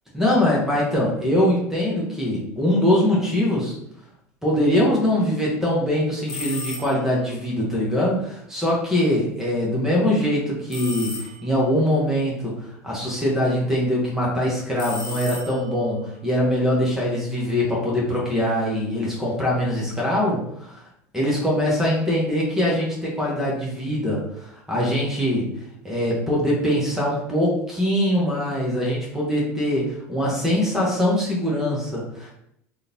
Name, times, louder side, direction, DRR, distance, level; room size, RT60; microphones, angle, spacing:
voice 1, 0.1-3.7 4.4-12.5 12.8-20.7 21.1-25.5 25.8-32.3, left 1 dB, 5° right, -4 dB, 1.5 m, -22 dB
sound 1, 6.3-7.2 10.7-11.7 14.8-15.9, left 2 dB, 45° left, 1.1 m, -35 dB
3.5 x 2.7 x 3.1 m, 0.74 s
hypercardioid pair, 80°, 8 cm